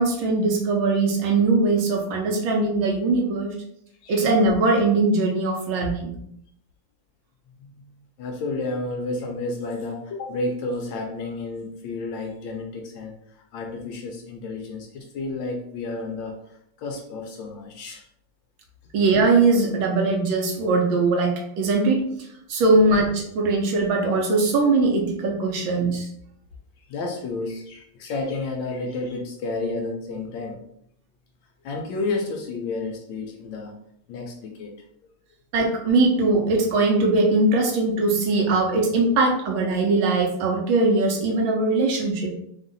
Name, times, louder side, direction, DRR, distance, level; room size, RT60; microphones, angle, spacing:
voice 1, 0.0-3.5 4.1-6.1 18.9-22.0 22.5-26.1 35.5-42.3, right 3 dB, 70° right, 1 dB, 1.4 m, -21 dB
voice 2, 8.2-18.0 26.8-30.6 31.6-33.8 34.1-34.8, left 3 dB, 75° left, 2 dB, 1.1 m, -31 dB
3.6 x 2.4 x 3.9 m, 0.72 s
omnidirectional pair, 2.4 m